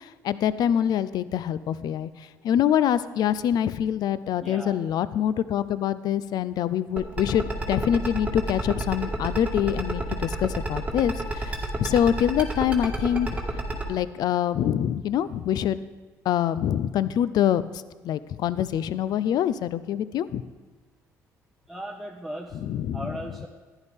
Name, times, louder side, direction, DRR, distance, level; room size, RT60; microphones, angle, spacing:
voice 1, 0.0-13.4 13.9-15.8 16.2-20.4 22.6-23.2, left 10 dB, 65° left, 16 dB, 0.4 m, -25 dB
voice 2, 4.4-4.8 21.7-22.6 22.9-23.5, right 1 dB, ahead, 1 dB, 0.9 m, -36 dB
sound 1, 7.0-13.9, right 2 dB, 15° right, 1.7 m, -29 dB
11.0 x 10.0 x 3.5 m, 1.3 s
supercardioid pair, 70°, 7 cm